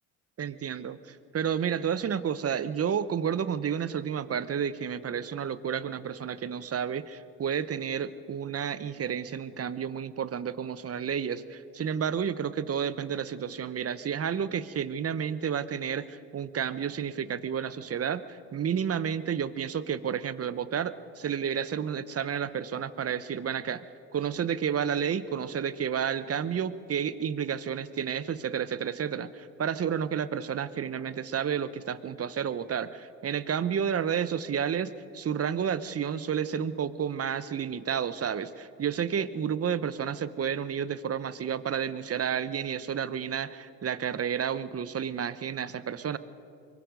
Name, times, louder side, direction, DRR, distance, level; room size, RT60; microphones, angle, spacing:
voice 1, 0.4-23.9 24.1-46.2, right 8 dB, 35° right, 15 dB, 1.0 m, -31 dB
24.5 x 22.5 x 5.3 m, 2.7 s
hypercardioid pair, 65°, 40 cm